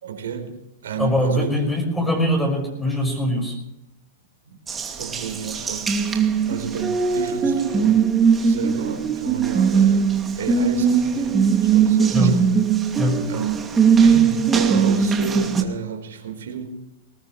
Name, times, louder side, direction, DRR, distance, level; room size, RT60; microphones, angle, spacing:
voice 1, 0.0-1.5 4.5-4.6 5.0-5.9 6.4-8.1 8.3-12.5 13.3-16.7, right 7 dB, 75° right, 5 dB, 4.1 m, -32 dB
voice 2, 1.0-3.6 12.1-12.4 13.0-13.2, equal, 10° left, 0 dB, 5.5 m, -22 dB
Water tap faucet, 4.7-15.6, right 6 dB, 20° right, 2.4 m, -20 dB
20.5 x 19.5 x 3.2 m, 0.86 s
hypercardioid pair, 115°, 0 cm